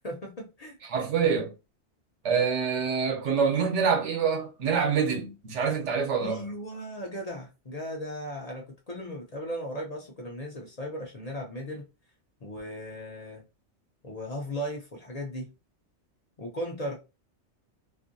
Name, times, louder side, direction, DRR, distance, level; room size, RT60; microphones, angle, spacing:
voice 1, 0.0-0.8 6.2-11.9 12.4-13.4 14.0-15.5 16.4-17.0, equal, 45° left, 0.6 m, -37 dB
voice 2, 0.9-1.5 2.2-6.4, right 6 dB, 85° right, 1.1 m, -26 dB
2.6 x 2.5 x 2.6 m
omnidirectional pair, 1.2 m